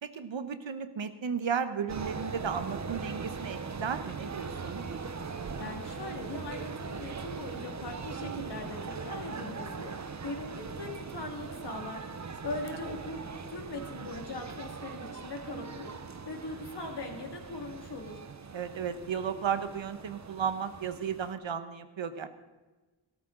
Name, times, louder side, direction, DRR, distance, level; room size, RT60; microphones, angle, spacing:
voice 1, 0.0-4.8 18.5-22.3, right 7 dB, 70° right, 10 dB, 1.0 m, -34 dB
sound 1, 1.9-21.3, right 5 dB, 35° right, 0.8 m, -40 dB
voice 2, 5.6-12.1 12.4-13.2 13.5-15.9 16.3-18.2, left 3 dB, 55° left, 3 dB, 2.1 m, -40 dB
17.0 x 13.5 x 3.8 m, 1.2 s
wide cardioid pair, 115°, 47 cm